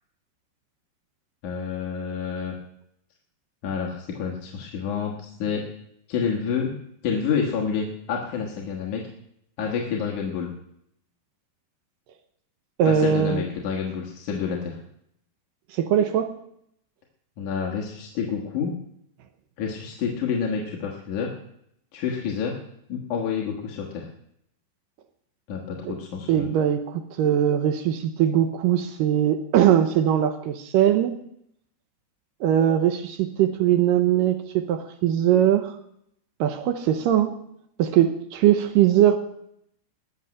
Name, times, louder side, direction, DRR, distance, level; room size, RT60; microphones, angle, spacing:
voice 1, 1.4-2.6 3.6-5.7 6.1-6.7 7.0-9.0 9.6-10.5 12.9-14.8 17.4-18.7 19.6-21.3 21.9-22.6 22.9-24.1 25.5-26.5, left 6 dB, 60° left, -1 dB, 2.4 m, -28 dB
voice 2, 12.8-13.4 15.7-16.3 25.9-26.0 26.3-31.1 32.4-35.7 36.4-37.3 37.8-39.2, right 10 dB, 80° right, 7 dB, 2.0 m, -21 dB
20.0 x 7.2 x 6.3 m, 0.74 s
omnidirectional pair, 5.0 m